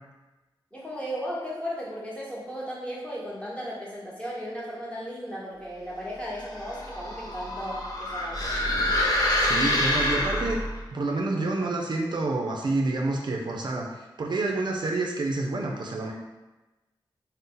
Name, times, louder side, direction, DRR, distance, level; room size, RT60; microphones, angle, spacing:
voice 1, 0.7-8.5, equal, 15° left, -6 dB, 0.9 m, -35 dB
sound 1, 6.3-10.8, left 1 dB, 45° left, 0.6 m, -26 dB
voice 2, 9.4-10.6 10.9-16.1, right 2 dB, 60° right, 0 dB, 0.4 m, -28 dB
2.6 x 2.0 x 3.7 m, 1.1 s
wide cardioid pair, 70°, 9 cm